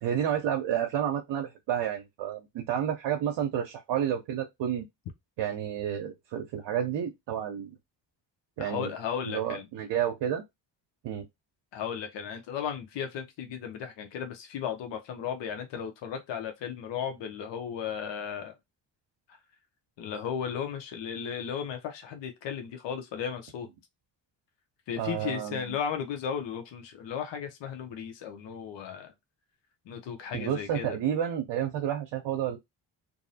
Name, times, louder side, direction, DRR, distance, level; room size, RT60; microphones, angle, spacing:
voice 1, 0.0-4.9 5.4-7.7 8.6-8.9 9.2-10.4 11.0-11.2 25.0-25.6 30.3-32.6, right 9 dB, 70° right, 0.6 m, -30 dB
voice 2, 8.6-9.7 11.7-18.5 20.0-23.7 24.9-29.1 29.9-31.0, left 7 dB, 75° left, 0.7 m, -35 dB
2.6 x 2.0 x 2.6 m
cardioid pair, 75°, 45 cm